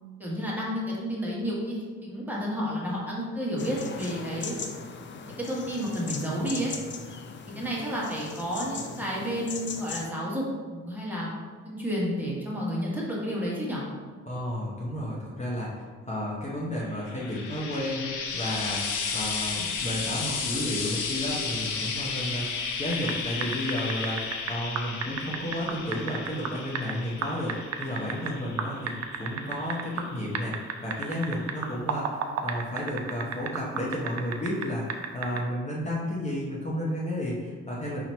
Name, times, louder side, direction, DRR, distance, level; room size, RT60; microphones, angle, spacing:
voice 1, 0.2-4.6 5.2-6.7 7.5-11.3 11.6-13.8, equal, 5° right, -6 dB, 1.3 m, -31 dB
sound 1, 3.6-10.1, left 5 dB, 40° left, 0.5 m, -39 dB
voice 2, 14.3-18.8 19.1-34.9 35.1-38.0, left 1 dB, 25° left, -6 dB, 1.0 m, -32 dB
Frying (food), 16.9-30.4 31.3-31.4, left 5 dB, 85° left, 0.7 m, -34 dB
sound 2, 22.9-23.1 23.4-26.9 27.2-28.3 28.6-30.1 30.4-34.7 34.9-35.4, right 8 dB, 60° right, 0.6 m, -31 dB
4.2 x 2.9 x 4.4 m, 1.5 s
cardioid pair, 90°, 30 cm